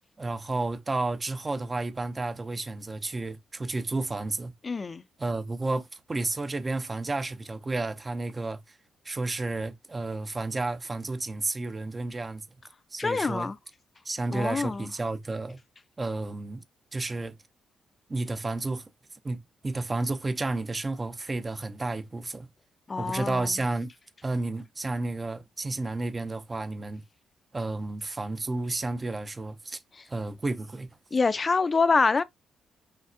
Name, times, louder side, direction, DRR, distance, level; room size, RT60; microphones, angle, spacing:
voice 1, 0.2-4.5 5.2-8.8 9.0-12.4 12.9-13.5 14.0-15.6 16.0-16.6 16.9-17.3 18.1-18.9 19.2-22.5 23.0-23.9 24.2-27.0 27.5-29.8 30.1-30.9, right 2 dB, 20° right, 0.6 m, -31 dB
voice 2, 4.6-5.0 13.0-13.6 14.3-14.9 22.9-23.5 31.1-32.2, left 4 dB, 30° left, 0.4 m, -25 dB
5.3 x 3.2 x 2.5 m
cardioid pair, 115°, 0 cm